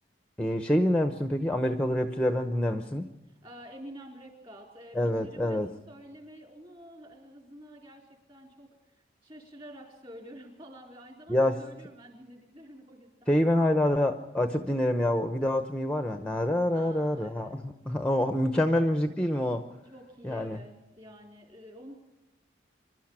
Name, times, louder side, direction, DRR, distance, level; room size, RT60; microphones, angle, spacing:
voice 1, 0.4-3.1 4.9-5.7 11.3-11.6 13.3-19.6 20.2-20.6, left 1 dB, 5° left, 8 dB, 0.8 m, -26 dB
voice 2, 3.3-5.6 5.9-8.8 9.2-13.3 16.7-17.6 18.6-18.8 19.9-21.9, equal, 30° right, 2 dB, 4.1 m, -49 dB
25.5 x 12.5 x 8.8 m, 0.99 s
head